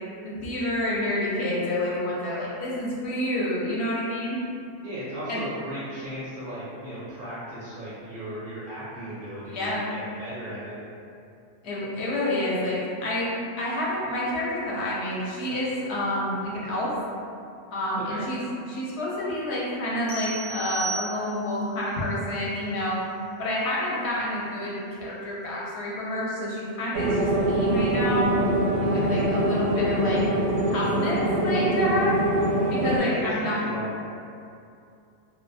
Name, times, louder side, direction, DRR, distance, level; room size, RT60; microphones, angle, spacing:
voice 1, 0.2-4.4 5.3-5.4 9.5-9.8 11.6-16.9 17.7-23.0 23.4-28.3 28.8-30.2 30.7-32.2 32.7-33.6, left 1 dB, 65° left, -6 dB, 0.8 m, -28 dB
voice 2, 4.8-10.8 18.0-18.2 28.8-29.4 33.0-34.0, equal, 60° right, -10 dB, 0.6 m, -36 dB
sound 1, 20.1-21.6, right 3 dB, 30° left, 0.3 m, -34 dB
sound 2, 26.9-33.0, right 1 dB, 80° right, 0.9 m, -24 dB
2.3 x 2.2 x 2.5 m, 2.6 s
omnidirectional pair, 1.3 m